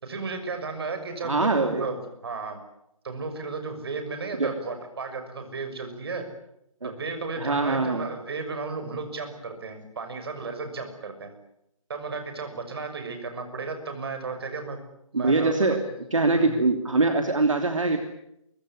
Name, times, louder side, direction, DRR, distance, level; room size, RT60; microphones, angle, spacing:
voice 1, 0.0-2.6 3.0-6.3 6.8-11.3 11.9-14.8 15.1-15.7 16.3-16.6, right 4 dB, 45° right, 7 dB, 6.3 m, -34 dB
voice 2, 1.2-1.9 4.4-4.5 6.8-6.9 7.4-8.1 15.1-15.8 16.1-18.0, right 3 dB, 65° right, 5 dB, 3.0 m, -23 dB
23.5 x 23.0 x 9.7 m, 0.79 s
figure-of-eight pair, 145°, 18 cm